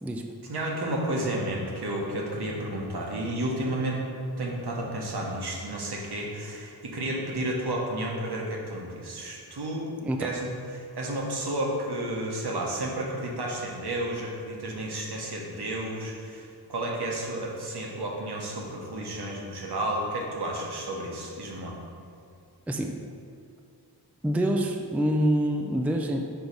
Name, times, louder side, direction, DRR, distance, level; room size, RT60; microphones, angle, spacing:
voice 1, 0.5-4.0 4.4-9.9 10.2-21.8, right 1 dB, 70° right, -2 dB, 1.1 m, -32 dB
voice 2, 24.2-26.2, right 1 dB, 5° right, 3 dB, 0.4 m, -26 dB
4.6 x 3.9 x 5.3 m, 2.3 s
wide cardioid pair, 65°, 41 cm